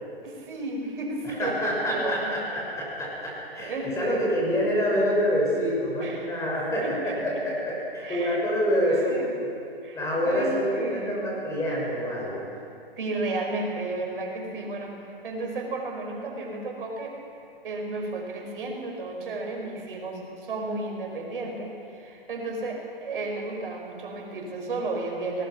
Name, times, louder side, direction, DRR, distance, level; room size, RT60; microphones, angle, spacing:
voice 1, 0.2-2.4 3.6-4.2 6.0-6.3 6.8-7.4 8.0-8.4 8.8-9.3 9.8-10.0 10.3-11.3 13.0-17.2 17.6-25.5, right 2 dB, 60° right, 1 dB, 5.3 m, -33 dB
voice 2, 1.2-9.5 9.9-12.4, equal, 10° left, -4 dB, 6.0 m, -27 dB
24.0 x 19.5 x 6.1 m, 2.5 s
figure-of-eight pair, 135°, 30 cm